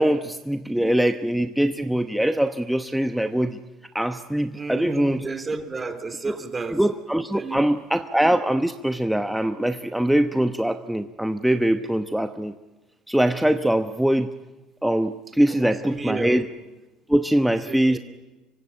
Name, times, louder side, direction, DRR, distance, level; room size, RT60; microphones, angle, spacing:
voice 1, 0.0-3.6 3.9-5.3 6.3-6.4 6.7-12.5 13.1-14.3 14.8-16.5 17.1-18.0, right 1 dB, 5° right, 8 dB, 1.0 m, -22 dB
voice 2, 4.5-6.8 7.3-7.7 15.5-16.5 17.7-18.0, right 4 dB, 20° right, 8 dB, 3.4 m, -32 dB
24.5 x 23.5 x 9.8 m, 1.1 s
supercardioid pair, 95°, 0 cm